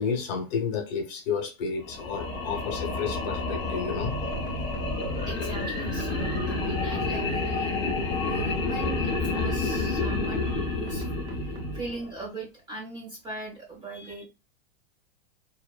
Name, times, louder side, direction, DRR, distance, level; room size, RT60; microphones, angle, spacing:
voice 1, 0.0-4.2 13.9-14.2, left 6 dB, 45° left, 0.9 m, -31 dB
sound 1, 1.8-12.2, left 3 dB, 15° left, 0.9 m, -30 dB
sound 2, 3.9-5.4 5.8-7.6 8.1-9.8 10.5-12.0, right 2 dB, 85° right, 0.9 m, -37 dB
voice 2, 5.3-14.2, right 3 dB, 15° right, 0.6 m, -40 dB
2.8 x 2.0 x 2.3 m
supercardioid pair, 165°, 31 cm